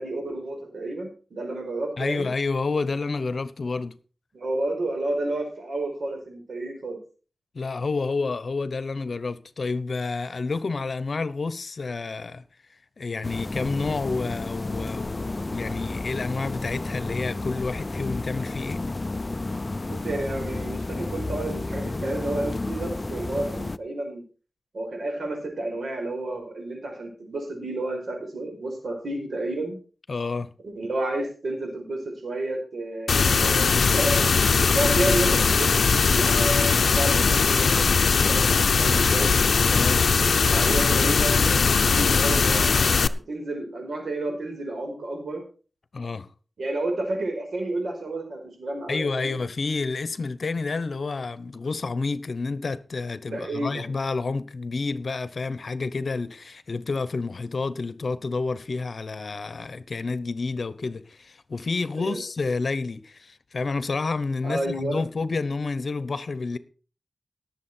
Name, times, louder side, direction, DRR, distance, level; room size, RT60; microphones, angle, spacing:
voice 1, 0.0-2.3 4.3-7.0 19.9-24.2 24.7-29.8 30.6-34.3 34.6-39.3 40.5-45.4 46.6-49.4 53.3-53.9 61.9-62.2 64.4-65.0, right 2 dB, 85° right, 4.8 m, -31 dB
voice 2, 2.0-4.0 7.5-12.4 13.0-18.9 30.1-30.5 39.7-40.1 45.9-46.3 48.9-66.6, left 4 dB, 65° left, 1.0 m, -29 dB
sound 1, 13.2-23.8, left 2 dB, 35° left, 0.5 m, -31 dB
sound 2, 33.1-43.1, left 5 dB, 85° left, 0.6 m, -20 dB
18.5 x 7.4 x 4.5 m
wide cardioid pair, 70°, 0 cm